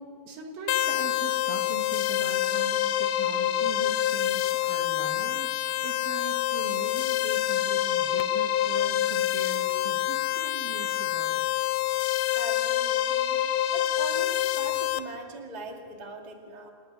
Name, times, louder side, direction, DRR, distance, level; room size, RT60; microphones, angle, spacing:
voice 1, 0.0-11.4, right 5 dB, 65° right, 3 dB, 3.5 m, -41 dB
sound 1, 0.7-15.0, left 13 dB, 90° left, 1.8 m, -26 dB
voice 2, 12.1-13.4 13.7-16.7, right 3 dB, 25° right, 2 dB, 0.9 m, -41 dB
28.5 x 10.5 x 9.6 m, 2.1 s
omnidirectional pair, 4.6 m